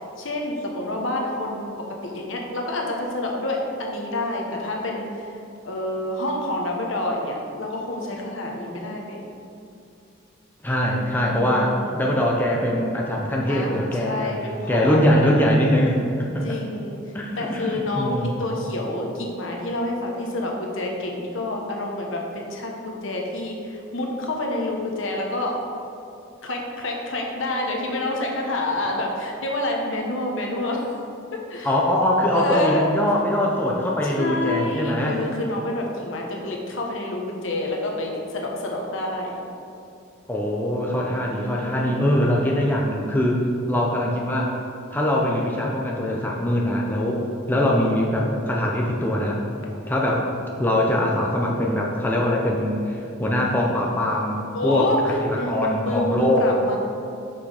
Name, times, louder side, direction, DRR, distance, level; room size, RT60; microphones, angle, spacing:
voice 1, 0.2-5.4 5.6-9.2 11.2-12.0 13.4-15.7 16.4-17.0 17.4-25.6 26.4-30.9 31.3-31.7 32.3-32.9 34.0-39.3 41.1-42.6 47.2-47.5 54.5-56.8, left 1 dB, 70° left, 0 dB, 1.1 m, -28 dB
voice 2, 10.6-14.3 14.7-16.6 17.1-18.4 31.6-35.2 40.3-44.6 44.9-47.2 47.5-49.4 49.9-50.3 50.6-54.9 55.2-56.5, left 1 dB, 10° left, -2 dB, 0.6 m, -22 dB
6.2 x 5.9 x 5.0 m, 2.7 s
head